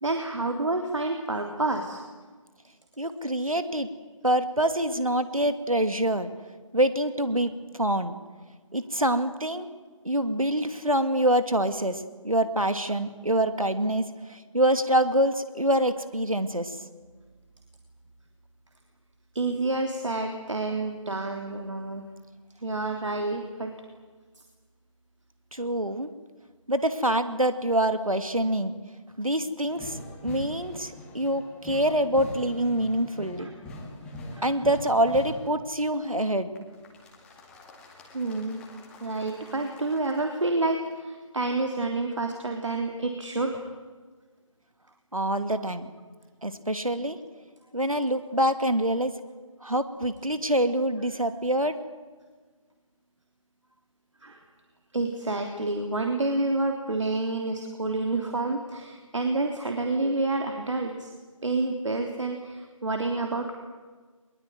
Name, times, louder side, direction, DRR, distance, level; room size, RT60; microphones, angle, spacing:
voice 1, 0.0-2.0 19.4-22.0 22.6-23.7 33.4-33.5 34.3-34.5 38.1-38.6 39.0-43.6 54.2-54.4 54.9-61.1 61.4-63.6, right 2 dB, 60° right, 4 dB, 3.4 m, -29 dB
voice 2, 3.0-3.9 4.2-6.3 6.7-8.2 8.7-9.7 10.0-16.8 25.5-26.1 26.7-28.7 29.2-33.5 34.4-36.5 45.1-45.9 46.4-47.2 47.7-49.1 49.6-51.7, right 1 dB, 90° right, 10 dB, 2.8 m, -25 dB
sound 1, 29.7-35.7 36.6-40.2, left 1 dB, 5° left, 2.2 m, -43 dB
22.5 x 22.0 x 9.6 m, 1.4 s
figure-of-eight pair, 160°, 17 cm